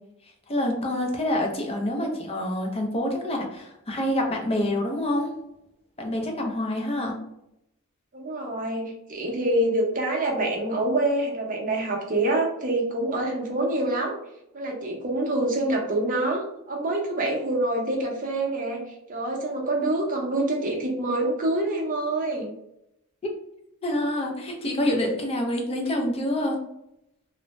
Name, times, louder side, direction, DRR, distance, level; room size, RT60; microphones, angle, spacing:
voice 1, 0.5-5.3 6.0-7.2 23.2-23.3 23.8-26.6, left 1 dB, 25° left, 1 dB, 0.5 m, -27 dB
voice 2, 8.1-14.1 14.5-22.5, right 1 dB, 40° right, 0 dB, 0.6 m, -26 dB
2.5 x 2.1 x 3.0 m, 0.82 s
head